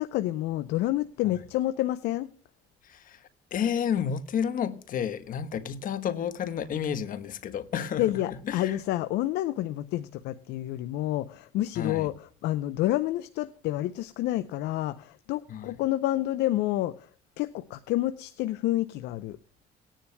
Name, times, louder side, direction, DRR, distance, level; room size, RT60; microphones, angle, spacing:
voice 1, 0.0-2.3 8.0-17.1 17.4-19.4, left 15 dB, 85° left, 0.6 m, -29 dB
voice 2, 2.8-8.8 11.7-12.1 15.5-15.8, left 8 dB, 55° left, 1.2 m, -31 dB
19.0 x 10.0 x 2.2 m
cardioid pair, 110°, 17 cm